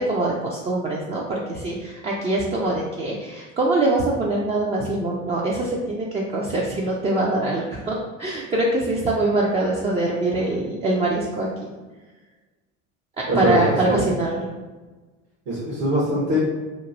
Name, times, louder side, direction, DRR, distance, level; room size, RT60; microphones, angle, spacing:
voice 1, 0.0-11.7 13.3-14.5, right 2 dB, 15° right, -4 dB, 0.3 m, -23 dB
voice 2, 13.3-14.1 15.5-16.4, equal, 70° right, -7 dB, 1.2 m, -22 dB
3.0 x 2.5 x 2.6 m, 1.3 s
hypercardioid pair, 75°, 41 cm